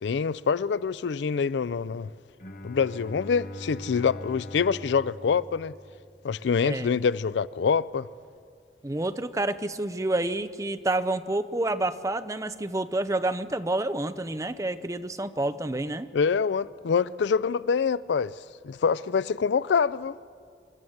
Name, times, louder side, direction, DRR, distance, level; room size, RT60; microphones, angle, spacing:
voice 1, 0.0-2.1 2.6-5.7 6.2-8.1 16.1-20.2, left 6 dB, 75° left, 0.4 m, -25 dB
Bowed string instrument, 2.4-6.3, left 1 dB, 50° left, 1.3 m, -42 dB
voice 2, 6.6-7.0 8.8-16.1, right 2 dB, 15° right, 0.6 m, -29 dB
26.5 x 12.5 x 7.9 m
head